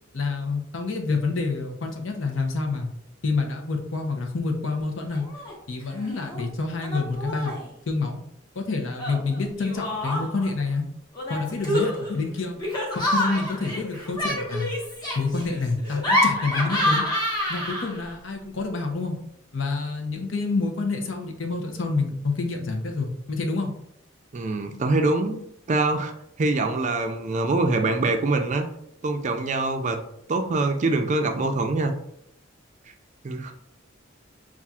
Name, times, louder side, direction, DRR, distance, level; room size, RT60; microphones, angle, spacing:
voice 1, 0.1-2.9 3.2-5.2 5.7-7.5 7.9-8.2 8.6-10.9 11.3-12.6 12.9-14.7 15.1-17.0 17.5-19.2 19.5-23.7, left 3 dB, 70° left, 3 dB, 0.7 m, -28 dB
Laughter, 5.1-5.5 5.8-6.4 6.8-7.7 9.0-10.5 11.1-18.1, left 1 dB, 20° left, 1.0 m, -28 dB
voice 2, 24.3-25.4 25.7-26.1 26.4-28.7 29.0-30.0 30.3-31.9 33.2-33.5, right 2 dB, 40° right, 5 dB, 0.4 m, -24 dB
5.5 x 2.4 x 2.4 m, 0.75 s
head